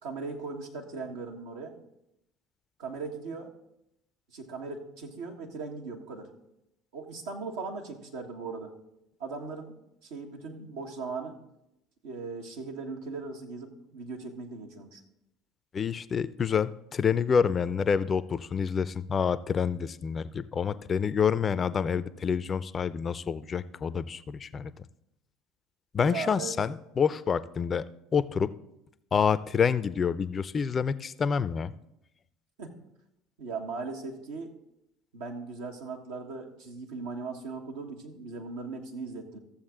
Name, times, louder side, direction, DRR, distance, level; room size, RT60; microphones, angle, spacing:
voice 1, 0.0-1.7 2.8-3.5 4.3-6.3 6.9-8.7 9.2-11.4 12.0-15.0 26.0-26.5 32.6-32.7 33.4-34.5 35.1-39.4, right 4 dB, 70° right, 1 dB, 1.6 m, -38 dB
voice 2, 15.7-24.7 25.9-28.5 29.1-31.7, left 6 dB, 35° left, 16 dB, 0.5 m, -28 dB
14.5 x 7.2 x 3.8 m, 0.83 s
hypercardioid pair, 65°, 0 cm